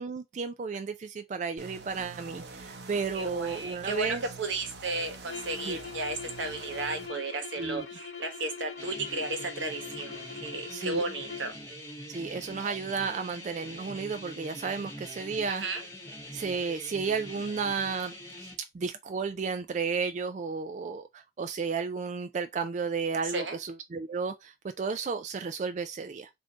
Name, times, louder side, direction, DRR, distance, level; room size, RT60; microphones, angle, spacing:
voice 1, 0.0-4.2 5.7-5.8 7.6-7.9 10.7-11.0 12.1-15.6 16.3-18.1 18.4-26.3, right 5 dB, 40° right, 0.3 m, -33 dB
sound 1, 1.6-7.1, right 3 dB, 60° right, 0.7 m, -46 dB
voice 2, 3.1-11.5 15.5-15.8 23.2-23.6, right 3 dB, 90° right, 1.1 m, -34 dB
sound 2, 5.2-11.6, left 6 dB, 70° left, 0.9 m, -43 dB
sound 3, 8.8-18.5, equal, 15° left, 1.4 m, -44 dB
3.5 x 2.6 x 3.7 m
head